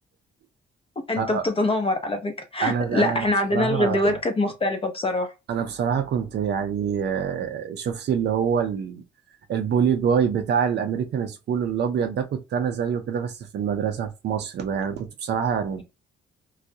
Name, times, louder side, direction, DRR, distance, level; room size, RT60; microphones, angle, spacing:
voice 1, 1.0-5.3, left 2 dB, 30° left, 0.6 m, -24 dB
voice 2, 2.6-4.2 5.5-9.0 9.5-15.8, right 7 dB, 60° right, 0.5 m, -25 dB
2.3 x 2.0 x 2.6 m
cardioid pair, 90°, 20 cm